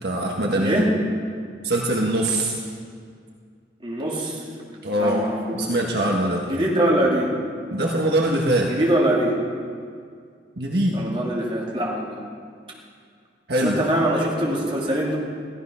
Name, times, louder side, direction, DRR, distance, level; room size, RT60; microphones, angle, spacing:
voice 1, 0.0-0.8 1.6-2.5 4.8-5.2 5.5-6.5 7.7-8.7 10.6-11.0 13.5-13.8, right 1 dB, 60° right, -1 dB, 1.5 m, -22 dB
voice 2, 0.5-0.9 3.8-5.6 6.5-7.4 8.7-9.4 10.9-12.2 13.6-15.2, right 1 dB, 30° right, -3 dB, 2.8 m, -23 dB
15.0 x 13.0 x 5.7 m, 2.1 s
head